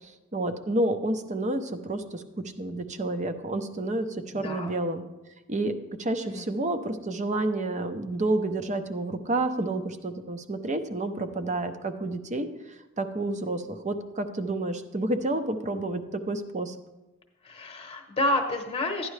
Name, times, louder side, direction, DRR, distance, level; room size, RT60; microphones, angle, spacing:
voice 1, 0.0-2.2 2.6-5.0 5.5-5.7 6.0-12.5 13.0-16.8, right 2 dB, 35° right, 9 dB, 0.7 m, -29 dB
voice 2, 4.3-4.7 6.3-6.5 17.4-19.1, left 1 dB, 30° left, 4 dB, 1.0 m, -29 dB
12.5 x 10.0 x 3.2 m, 1.0 s
head